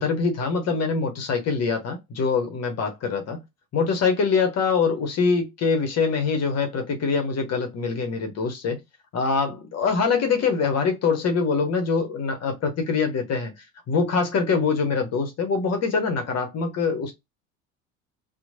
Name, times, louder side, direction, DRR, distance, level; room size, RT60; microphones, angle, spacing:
voice 1, 0.0-3.4 3.7-8.8 9.1-13.5 13.9-17.1, left 5 dB, 40° left, 0.8 m, -24 dB
2.9 x 2.1 x 2.5 m
hypercardioid pair, 65°, 40 cm